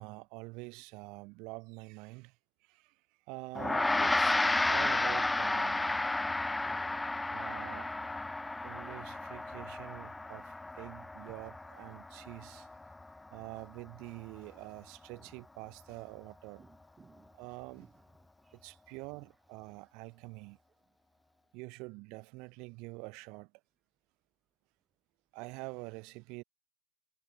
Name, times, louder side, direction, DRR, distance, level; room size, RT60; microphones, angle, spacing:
voice 1, 0.0-3.0 3.3-4.4 4.7-6.0 7.3-7.9 8.6-12.7 13.3-16.6 17.3-17.9 18.5-20.6 21.5-23.5 25.3-26.4, right 27 dB, 45° right, 2.1 m, -46 dB
Gong, 3.6-13.2, left 2 dB, 5° left, 0.4 m, -32 dB
voice 2, 6.2-7.4 8.3-8.7 15.1-15.3 16.6-17.3 17.8-17.9 18.4-18.6, right 4 dB, 15° right, 1.8 m, -62 dB
figure-of-eight pair, 90°, 0 cm